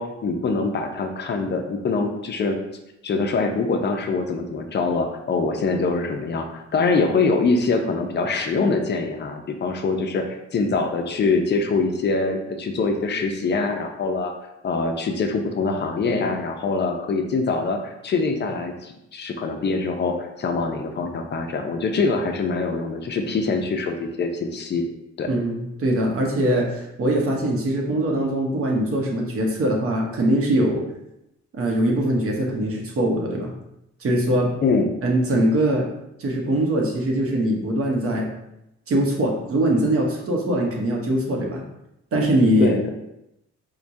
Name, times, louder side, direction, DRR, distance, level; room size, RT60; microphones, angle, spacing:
voice 1, 0.0-2.6 3.0-14.3 14.6-24.8 25.2-25.3 34.6-34.9 42.6-42.9, left 4 dB, 35° left, 4 dB, 0.5 m, -24 dB
voice 2, 25.3-30.8 31.5-33.5 34.0-34.5 35.0-35.9 36.2-38.3 38.9-41.6 42.1-42.7, right 1 dB, 50° right, 0 dB, 0.8 m, -22 dB
4.6 x 2.2 x 2.6 m, 0.86 s
cardioid pair, 110°, 30 cm